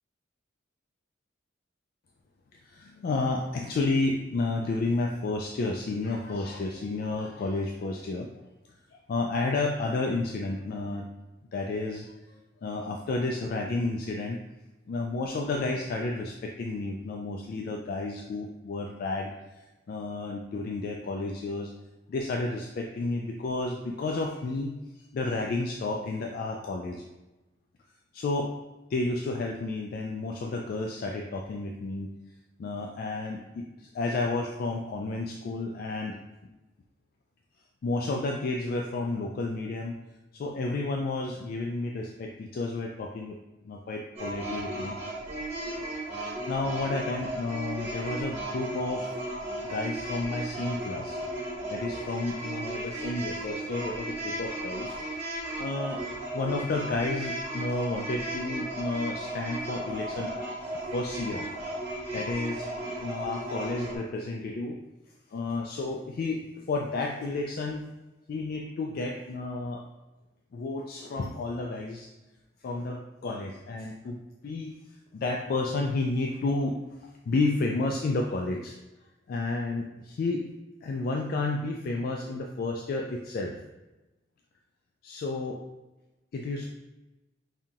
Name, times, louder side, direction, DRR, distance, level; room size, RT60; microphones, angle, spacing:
voice 1, 2.7-8.3 8.9-11.1 11.5-12.1 12.6-14.4 14.9-19.3 19.9-21.7 22.1-24.7 25.1-27.0 28.1-28.5 28.9-32.1 32.6-36.2 37.8-40.0 40.3-43.4 43.6-45.0 46.5-49.1 49.6-51.2 51.7-55.0 55.6-56.0 56.3-60.5 60.9-61.5 62.1-64.8 65.3-66.4 66.7-67.8 68.3-69.8 70.5-72.1 72.6-74.8 75.1-76.8 77.0-78.8 79.3-80.4 80.8-83.6 85.0-85.6 86.3-86.7, left 3 dB, 50° left, 1 dB, 0.3 m, -31 dB
sound 1, 44.2-64.0, right 1 dB, 35° right, 1.4 m, -35 dB
5.4 x 2.7 x 2.4 m, 1.1 s
head